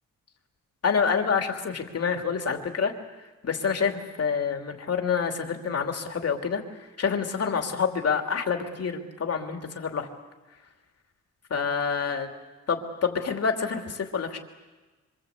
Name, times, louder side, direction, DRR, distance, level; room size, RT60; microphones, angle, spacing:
voice 1, 0.8-2.9 3.4-10.1 11.5-12.3 12.7-14.4, left 6 dB, 50° left, 4 dB, 2.9 m, -27 dB
26.5 x 25.5 x 8.4 m, 1.2 s
wide cardioid pair, 170°, 31 cm